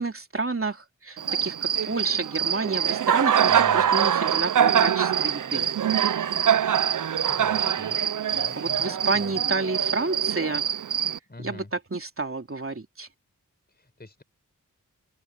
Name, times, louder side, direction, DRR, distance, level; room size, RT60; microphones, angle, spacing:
voice 1, 0.0-5.7 8.6-10.6 11.4-13.1, right 3 dB, 45° right, 2.9 m, -30 dB
Cricket, 1.2-11.2, right 9 dB, 75° right, 0.6 m, -24 dB
voice 2, 3.5-3.9 7.2-8.0 8.3-9.3 11.3-11.7 13.7-14.2, left 2 dB, 30° left, 4.9 m, -44 dB
open air
wide cardioid pair, 75°, 32 cm